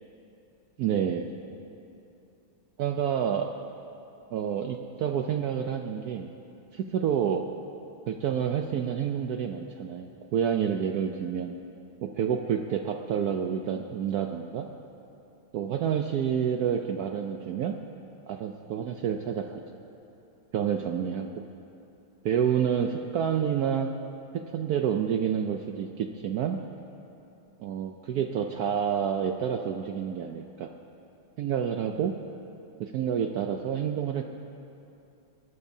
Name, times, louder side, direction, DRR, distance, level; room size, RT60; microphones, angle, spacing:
voice 1, 0.8-1.3 2.8-3.5 4.3-6.3 6.7-7.5 8.1-11.5 12.0-14.7 15.5-17.8 18.3-19.6 20.5-21.4 22.2-23.9 24.3-26.6 27.6-30.7 31.4-32.1 32.8-34.2, right 8 dB, 70° right, 5 dB, 0.9 m, -28 dB
20.0 x 19.5 x 2.7 m, 2.8 s
omnidirectional pair, 2.1 m